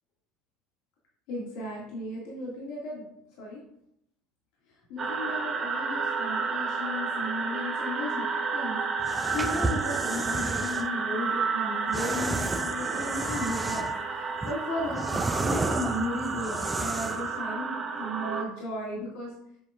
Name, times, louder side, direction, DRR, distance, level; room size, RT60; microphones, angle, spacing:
voice 1, 1.3-3.1 3.4-3.6 4.9-8.3 8.5-8.8 9.1-15.0 15.4-19.3, left 1 dB, 60° left, -4 dB, 1.8 m, -35 dB
sound 1, 5.0-18.4, right 5 dB, 35° right, 1.2 m, -31 dB
sound 2, 9.0-10.9 11.9-14.0 14.4-17.3, right 2 dB, 15° right, 0.4 m, -32 dB
7.7 x 7.2 x 2.4 m, 0.74 s
hypercardioid pair, 75°, 0 cm